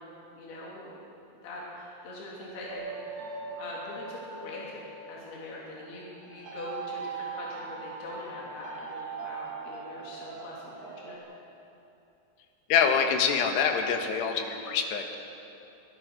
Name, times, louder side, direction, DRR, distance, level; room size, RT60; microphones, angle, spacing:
voice 1, 0.4-0.9 1.4-3.2 3.6-11.2, left 2 dB, 70° left, -5 dB, 5.1 m, -42 dB
sound 1, 2.7-11.2, right 4 dB, 70° right, 4.3 m, -41 dB
voice 2, 12.7-15.2, left 6 dB, 85° left, 4 dB, 3.7 m, -25 dB
26.0 x 16.5 x 6.3 m, 2.8 s
omnidirectional pair, 4.7 m